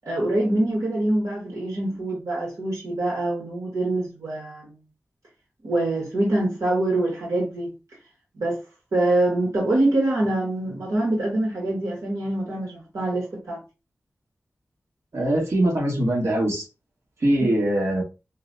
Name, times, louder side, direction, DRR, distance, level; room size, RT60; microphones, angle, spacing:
voice 1, 0.0-4.7 5.6-7.7 8.4-8.6 8.9-13.6, right 1 dB, 80° right, 1.3 m, -24 dB
voice 2, 15.1-16.6 17.2-18.0, right 1 dB, 65° right, 1.5 m, -22 dB
5.1 x 2.2 x 2.6 m
wide cardioid pair, 70°, 5 cm